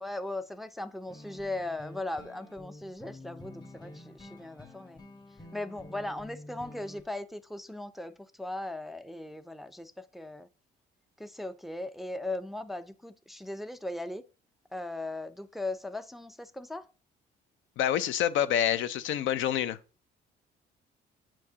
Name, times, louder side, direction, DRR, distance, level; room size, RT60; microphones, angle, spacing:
voice 1, 0.0-5.0 5.5-10.5 11.2-14.2 14.7-16.9, left 2 dB, ahead, 0.4 m, -38 dB
sound 1, 1.1-7.0, left 1 dB, 20° left, 1.1 m, -49 dB
voice 2, 17.8-19.8, left 10 dB, 75° left, 0.5 m, -27 dB
8.6 x 4.6 x 2.8 m
cardioid pair, 90°, 20 cm